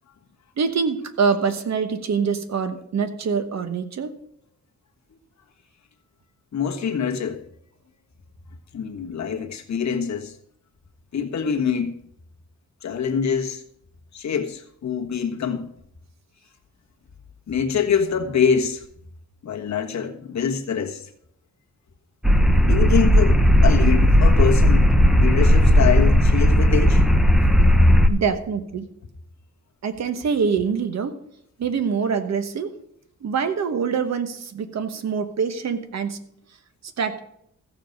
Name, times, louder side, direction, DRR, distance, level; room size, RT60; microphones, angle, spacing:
voice 1, 0.6-4.1 28.1-28.9 29.8-31.1 31.6-32.7 33.2-36.2 37.0-37.2, right 6 dB, 55° right, 1.2 m, -24 dB
voice 2, 6.5-7.4 8.7-10.4 11.1-11.9 12.8-13.6 14.1-15.7 17.5-18.8 19.4-21.1 22.6-23.3 23.6-27.0, left 7 dB, 60° left, 1.4 m, -25 dB
sound 1, 22.2-28.1, equal, ahead, 0.7 m, -15 dB
14.5 x 7.3 x 5.2 m
wide cardioid pair, 130°, 31 cm